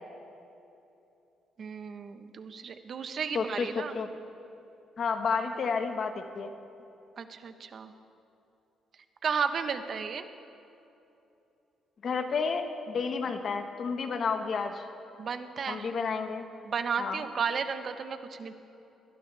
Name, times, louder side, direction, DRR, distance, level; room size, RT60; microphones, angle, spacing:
voice 1, 1.6-3.9 5.3-5.7 7.2-7.9 9.2-10.2 15.2-15.9 16.6-18.5, right 6 dB, 55° right, 8 dB, 1.1 m, -34 dB
voice 2, 3.3-3.7 3.9-4.1 5.0-6.5 12.0-14.8 15.7-16.5 17.0-17.2, left 5 dB, 55° left, 6 dB, 1.4 m, -31 dB
21.5 x 19.5 x 3.4 m, 2.8 s
cardioid pair, 90°, 0 cm